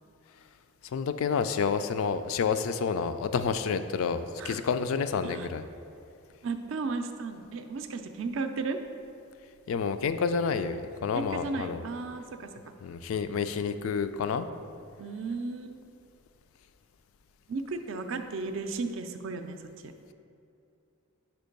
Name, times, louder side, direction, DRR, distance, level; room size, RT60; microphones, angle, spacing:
voice 1, 0.9-5.6 9.7-11.8 12.8-14.5, left 5 dB, 70° left, 11 dB, 0.3 m, -29 dB
voice 2, 6.4-8.8 11.1-12.5 15.0-15.8 17.5-19.6, right 3 dB, 60° right, 7 dB, 0.4 m, -34 dB
5.0 x 4.5 x 5.2 m, 2.6 s
head